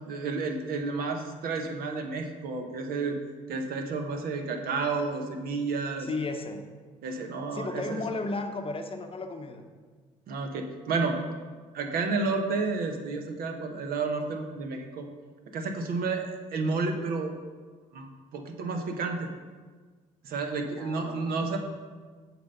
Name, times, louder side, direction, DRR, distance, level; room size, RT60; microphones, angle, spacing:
voice 1, 0.0-3.2 3.5-6.1 7.0-8.0 10.3-11.2 11.7-15.1 15.5-17.4 17.9-19.3 20.2-21.6, right 4 dB, 60° right, 4 dB, 1.0 m, -31 dB
voice 2, 6.0-6.7 7.5-9.6 20.8-21.5, left 3 dB, 30° left, 6 dB, 0.9 m, -34 dB
7.1 x 4.4 x 5.5 m, 1.5 s
hypercardioid pair, 55°, 17 cm